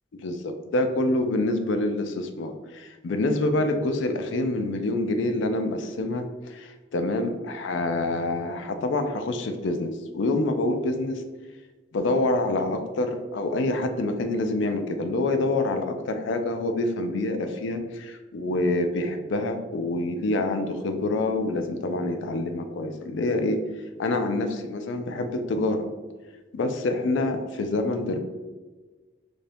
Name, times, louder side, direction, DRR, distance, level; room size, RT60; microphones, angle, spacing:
voice 1, 0.1-11.2 11.9-23.6 24.0-25.9 26.5-28.2, left 2 dB, 65° left, 7 dB, 0.4 m, -26 dB
2.7 x 2.6 x 3.3 m, 1.3 s
head